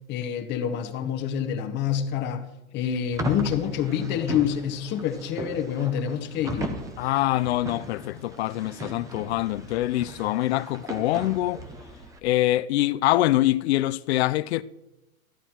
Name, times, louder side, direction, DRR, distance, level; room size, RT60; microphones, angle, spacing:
voice 1, 0.1-2.5 2.7-6.7, left 9 dB, 25° left, 0.9 m, -27 dB
sound 1, 3.1-12.2, right 2 dB, 10° right, 0.5 m, -38 dB
voice 2, 7.0-11.6 12.2-14.6, left 16 dB, 50° left, 0.5 m, -24 dB
14.0 x 9.0 x 4.4 m
hypercardioid pair, 145°, 43 cm